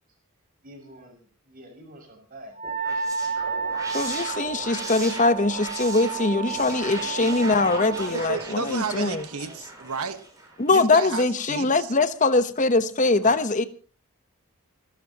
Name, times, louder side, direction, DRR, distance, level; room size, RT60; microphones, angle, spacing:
voice 1, 0.6-2.6 2.8-3.4 3.9-4.9 6.9-7.2 8.8-9.6, right 1 dB, 40° right, 3 dB, 6.2 m, -47 dB
Wind instrument woodwind instrument, 2.6-8.1, right 6 dB, 65° left, 2.1 m, -31 dB
sound 1, 2.6-10.7, right 2 dB, 15° right, 6.1 m, -38 dB
voice 2, 3.9-9.2 10.6-13.6, left 3 dB, 35° left, 12 dB, 0.9 m, -22 dB
voice 3, 7.7-10.2 10.7-11.9 13.2-13.3, right 5 dB, 80° right, 9 dB, 1.4 m, -32 dB
29.5 x 12.5 x 2.9 m, 0.38 s
head